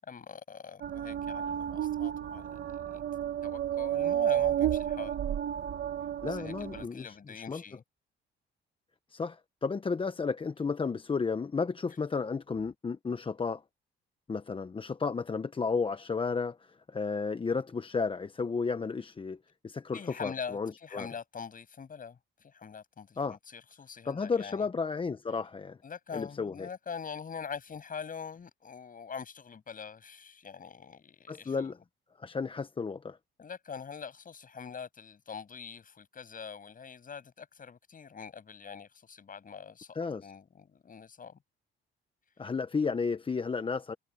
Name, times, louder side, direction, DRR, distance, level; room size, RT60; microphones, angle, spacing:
voice 1, 0.0-3.0 3.4-5.2 6.2-7.8 19.9-24.7 25.8-31.7 33.4-41.4, left 6 dB, 45° left, 7.9 m, -44 dB
sound 1, 0.8-6.9, right 10 dB, 60° right, 1.2 m, -31 dB
voice 2, 6.2-7.2 7.5-7.6 9.1-13.6 14.3-19.4 19.6-21.1 23.2-23.4 24.0-25.8 26.1-26.7 31.3-31.8 32.2-33.2 40.0-40.3 42.4-43.9, left 5 dB, 25° left, 0.8 m, -33 dB
cardioid pair, 90°, 20 cm